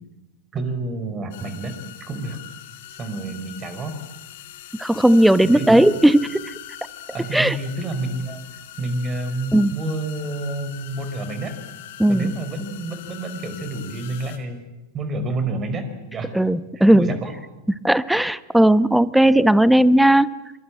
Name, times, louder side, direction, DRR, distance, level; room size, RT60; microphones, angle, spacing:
voice 1, 0.5-1.7 2.1-2.4 3.0-3.9 5.4-5.9 7.1-8.4 8.8-11.5 12.1-14.6 14.9-15.8 16.1-16.3 16.8-17.3, right 2 dB, 25° right, 9 dB, 5.2 m, -29 dB
sound 1, 1.3-14.4, left 12 dB, 55° left, 4.0 m, -41 dB
voice 2, 4.8-6.5 7.3-7.6 9.5-9.7 12.0-12.3 16.3-17.1 17.8-20.3, right 1 dB, 5° right, 17 dB, 0.9 m, -16 dB
26.0 x 24.5 x 8.9 m, 1.1 s
figure-of-eight pair, 90°, 0 cm